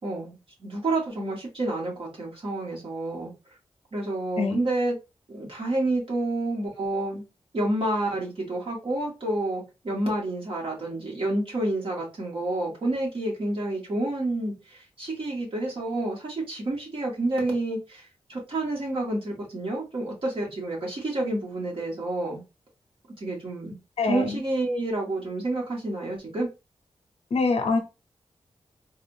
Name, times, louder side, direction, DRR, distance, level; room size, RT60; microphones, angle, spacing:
voice 1, 0.0-3.3 3.9-5.0 5.3-7.2 7.5-22.4 23.2-23.8 24.0-26.5, right 2 dB, 60° right, -3 dB, 2.0 m, -29 dB
voice 2, 24.0-24.4 27.3-27.8, left 4 dB, 85° left, 5 dB, 0.8 m, -24 dB
4.0 x 2.5 x 2.8 m, 0.27 s
wide cardioid pair, 75°, 10 cm